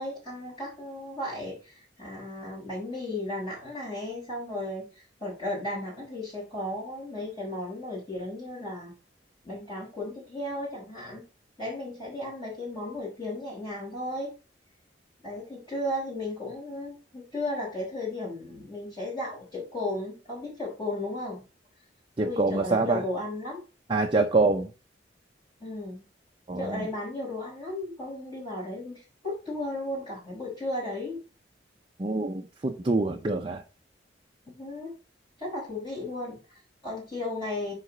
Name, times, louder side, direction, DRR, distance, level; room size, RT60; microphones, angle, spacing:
voice 1, 0.0-8.9 9.4-11.3 11.6-14.3 15.2-21.5 22.2-23.6 25.6-26.0 26.6-31.2 34.5-34.9 35.4-37.7, left 1 dB, 25° left, 4.7 m, -35 dB
voice 2, 22.2-23.0 23.9-24.7 26.5-26.9 32.0-33.6, right 3 dB, 30° right, 0.6 m, -25 dB
9.8 x 4.1 x 3.9 m
head